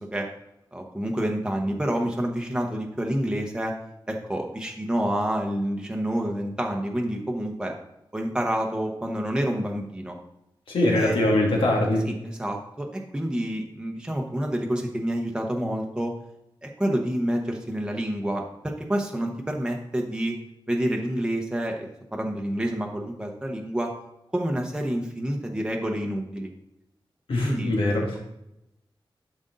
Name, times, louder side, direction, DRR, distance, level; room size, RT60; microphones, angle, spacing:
voice 1, 0.7-3.7 4.1-7.7 8.1-10.2 10.9-11.2 12.0-16.1 16.6-18.4 18.8-20.3 20.7-23.9 24.3-26.5 27.4-27.7, right 1 dB, 10° right, 1 dB, 0.9 m, -28 dB
voice 2, 10.7-12.0 27.3-28.1, left 1 dB, 75° left, -2 dB, 2.5 m, -22 dB
11.5 x 5.2 x 4.0 m, 0.84 s
wide cardioid pair, 140°, 9 cm